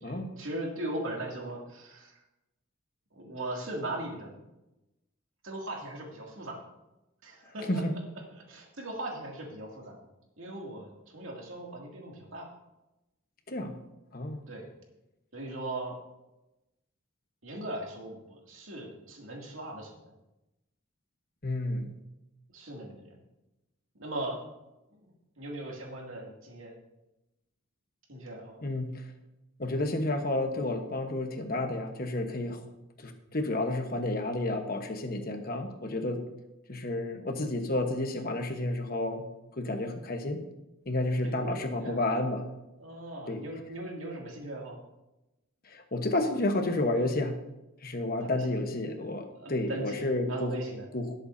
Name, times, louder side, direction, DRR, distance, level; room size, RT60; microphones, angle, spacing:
voice 1, 0.0-2.2 3.1-4.5 5.4-6.6 7.2-7.8 8.3-10.0 10.4-12.5 14.5-14.7 15.3-15.9 17.4-20.1 22.5-23.2 23.9-24.4 25.4-26.8 28.1-28.6 41.2-42.1 42.8-44.8 48.2-48.5 49.3-50.9, right 1 dB, 85° right, -1 dB, 2.5 m, -39 dB
voice 2, 21.4-21.9 28.6-29.0 29.6-32.6 33.0-36.2 36.7-39.3 39.6-40.4 40.9-42.5 43.3-43.4 45.7-47.4 47.8-50.5 50.9-51.1, left 2 dB, 45° left, 5 dB, 1.2 m, -31 dB
18.0 x 7.9 x 2.7 m, 0.96 s
head